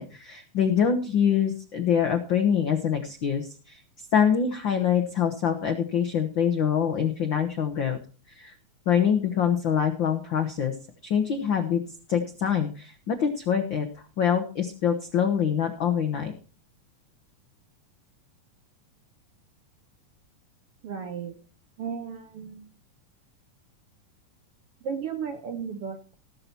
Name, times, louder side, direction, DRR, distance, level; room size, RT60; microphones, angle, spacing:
voice 1, 0.0-3.8 4.1-8.0 8.4-8.5 8.9-10.7 11.0-11.8 12.1-13.9 14.2-16.3, left 8 dB, 85° left, 6 dB, 1.0 m, -25 dB
voice 2, 20.8-21.4 21.8-22.6 24.8-26.1, right 6 dB, 65° right, 7 dB, 1.5 m, -34 dB
18.5 x 6.9 x 4.3 m, 0.36 s
omnidirectional pair, 3.7 m